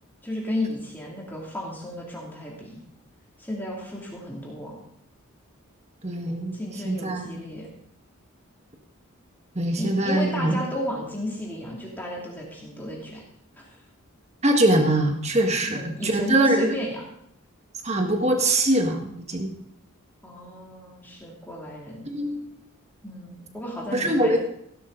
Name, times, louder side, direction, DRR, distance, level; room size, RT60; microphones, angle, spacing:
voice 1, 0.2-2.8 3.4-4.8 6.5-7.7 9.8-13.2 13.6-13.8 15.7-17.0 20.2-22.1 23.0-24.4, left 1 dB, 10° left, -3 dB, 2.6 m, -33 dB
voice 2, 6.0-6.6 6.8-7.3 9.6-10.6 14.4-16.7 17.8-19.5 22.1-22.5 23.9-24.4, right 1 dB, 30° right, 4 dB, 1.7 m, -22 dB
16.0 x 11.5 x 3.9 m, 0.75 s
head